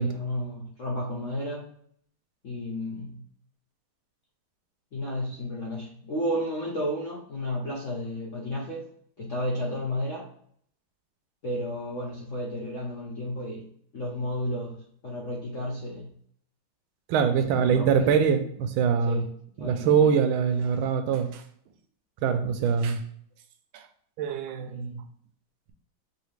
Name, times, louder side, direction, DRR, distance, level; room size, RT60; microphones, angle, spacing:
voice 1, 0.0-1.7 2.4-3.2 4.9-8.9 9.2-10.3 11.4-13.7 13.9-14.8 15.0-16.1 17.5-18.1 19.1-19.3 19.6-20.1 22.6-22.7 24.6-25.1, left 1 dB, 65° left, -3 dB, 0.7 m, -32 dB
voice 2, 17.1-19.2 19.6-21.4 22.2-23.0 23.7-23.8 24.2-25.0, right 7 dB, 80° right, 8 dB, 1.4 m, -24 dB
4.8 x 2.9 x 3.2 m, 0.63 s
omnidirectional pair, 2.3 m